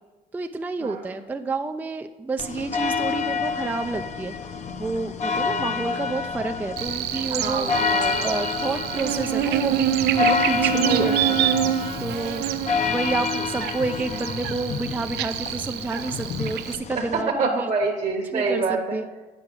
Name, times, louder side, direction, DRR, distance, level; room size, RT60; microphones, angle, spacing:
voice 1, 0.3-4.3 4.8-7.7 8.2-11.2 12.0-12.4 12.8-17.7 18.3-19.1, right 3 dB, 10° right, 7 dB, 0.3 m, -29 dB
sound 1, 2.4-17.2, left 5 dB, 45° left, 0.6 m, -28 dB
Buzz, 6.8-16.8, right 10 dB, 75° right, 0.5 m, -26 dB
voice 2, 7.4-8.4 10.8-11.4 16.9-19.0, right 4 dB, 40° right, -1 dB, 1.1 m, -26 dB
8.9 x 4.8 x 6.1 m, 1.2 s
cardioid pair, 110°, 17 cm